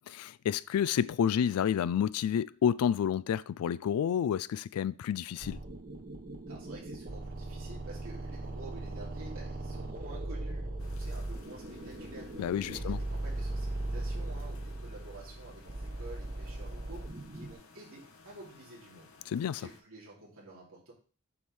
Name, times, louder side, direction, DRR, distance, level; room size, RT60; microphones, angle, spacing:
voice 1, 0.1-5.6 12.4-13.0 19.3-19.6, left 8 dB, 85° left, 0.3 m, -29 dB
sound 1, 5.4-17.6, right 2 dB, 40° right, 0.8 m, -39 dB
voice 2, 6.5-12.3 12.7-19.1 19.5-20.9, right 2 dB, 65° right, 2.7 m, -50 dB
sound 2, 10.8-19.8, left 4 dB, 65° left, 0.8 m, -57 dB
7.1 x 5.4 x 3.2 m
head